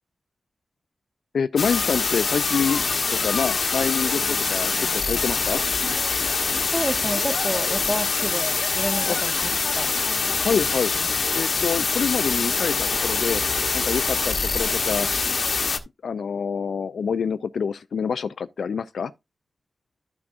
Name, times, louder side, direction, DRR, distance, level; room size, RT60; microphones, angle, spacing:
voice 1, 1.3-2.8 3.2-5.6 9.1-9.2 10.4-10.9 11.4-13.4 13.7-15.1 16.0-19.1, left 6 dB, 90° left, 0.3 m, -26 dB
sound 1, 1.6-15.8, left 4 dB, 60° left, 1.0 m, -24 dB
voice 2, 6.7-9.9, right 1 dB, 10° right, 1.2 m, -30 dB
12.5 x 6.0 x 2.5 m
wide cardioid pair, 90°, 0 cm